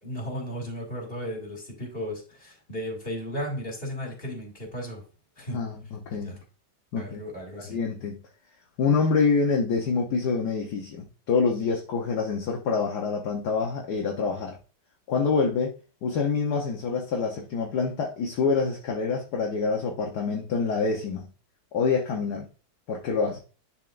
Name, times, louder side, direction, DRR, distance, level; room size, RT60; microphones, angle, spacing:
voice 1, 0.0-5.0 5.4-5.6 6.2-6.4 7.0-7.8, equal, 30° left, 2.6 m, -35 dB
voice 2, 5.5-6.4 6.9-7.2 7.7-8.2 8.8-14.6 15.1-15.7 16.0-21.3 21.7-22.5 22.9-23.4, left 4 dB, 65° left, 1.4 m, -26 dB
11.0 x 4.6 x 2.5 m
omnidirectional pair, 2.0 m